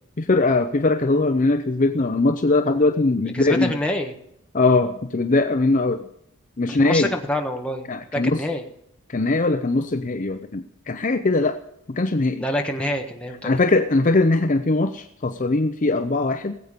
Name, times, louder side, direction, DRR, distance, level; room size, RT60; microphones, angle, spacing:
voice 1, 0.2-3.7 4.5-6.1 6.6-7.1 7.9-8.4 9.1-11.6 11.9-12.4 13.4-16.5, left 2 dB, 35° left, 8 dB, 0.6 m, -21 dB
voice 2, 3.3-4.1 6.7-8.7 12.4-13.5, left 1 dB, 5° left, 2 dB, 1.4 m, -27 dB
19.0 x 8.1 x 5.2 m, 0.77 s
head